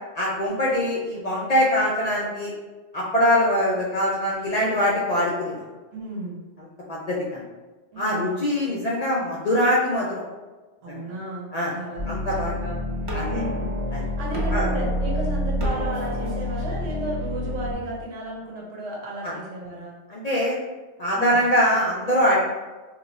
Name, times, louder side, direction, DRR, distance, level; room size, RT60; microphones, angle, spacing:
voice 1, 0.1-2.5 2.9-5.6 6.9-7.4 8.0-10.2 10.9-11.1 11.5-11.7 12.1-12.5 13.1-13.4 13.9-14.0 14.5-14.7 19.2-19.3 20.1-20.6 21.0-22.4, equal, 55° left, -5 dB, 0.4 m, -23 dB
voice 2, 5.9-6.4 7.9-8.3 10.8-13.7 14.2-19.9 21.1-21.4, right 2 dB, 85° right, -3 dB, 1.2 m, -34 dB
sound 1, 12.0-17.7, left 1 dB, 35° right, 0.5 m, -27 dB
2.9 x 2.3 x 4.0 m, 1.3 s
omnidirectional pair, 1.2 m